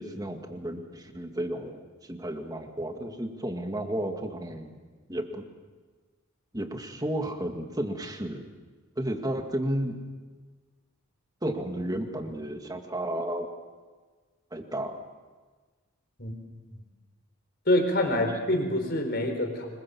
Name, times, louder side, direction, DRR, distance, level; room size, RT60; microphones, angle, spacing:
voice 1, 0.0-4.8 5.1-5.4 6.5-8.5 9.0-10.0 11.4-13.5 14.5-15.0 18.1-18.2, right 1 dB, 20° right, 4 dB, 2.1 m, -33 dB
voice 2, 17.7-19.7, left 1 dB, 50° left, 5 dB, 4.2 m, -26 dB
25.5 x 22.5 x 7.2 m, 1.4 s
head